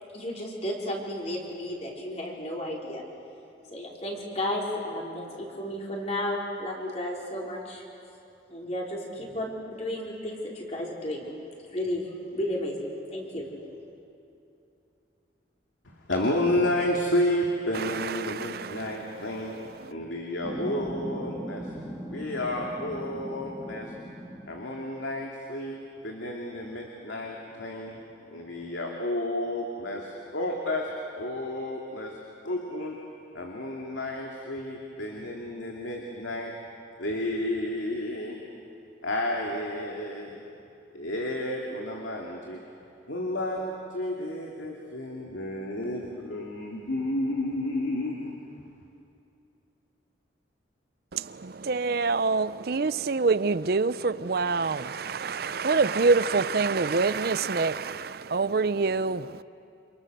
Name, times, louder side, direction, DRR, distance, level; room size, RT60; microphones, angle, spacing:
voice 1, 0.1-3.0 3.7-8.1 8.5-11.2 11.7-12.8 13.1-13.7, left 1 dB, 35° left, -3 dB, 4.6 m, -33 dB
voice 2, 16.1-19.5 19.9-21.7 22.1-23.9 24.5-25.8 26.0-27.9 28.3-30.9 31.2-32.1 32.4-33.0 33.3-36.5 37.0-38.4 39.0-40.5 40.9-42.6 43.1-48.5, left 1 dB, 85° left, -1 dB, 2.6 m, -31 dB
voice 3, 17.7-19.9 51.1-59.4, right 4 dB, 55° right, 15 dB, 0.6 m, -26 dB
sound 1, 20.4-24.9 26.2-26.3 26.7-28.8, equal, 5° left, 2.1 m, -40 dB
29.0 x 28.0 x 6.7 m, 2.7 s
head